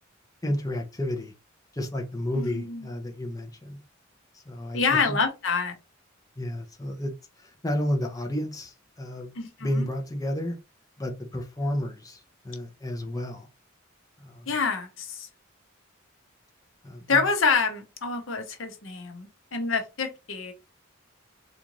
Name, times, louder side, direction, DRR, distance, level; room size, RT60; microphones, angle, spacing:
voice 1, 0.4-1.3 1.7-3.8 4.3-5.2 6.4-9.3 9.6-10.6 11.0-13.5 14.2-14.5 16.8-17.2, left 1 dB, 20° left, 0.7 m, -31 dB
voice 2, 2.3-2.9 4.7-5.7 9.3-9.9 14.5-15.3 17.1-20.5, left 5 dB, 70° left, 0.8 m, -27 dB
3.8 x 2.5 x 3.0 m
head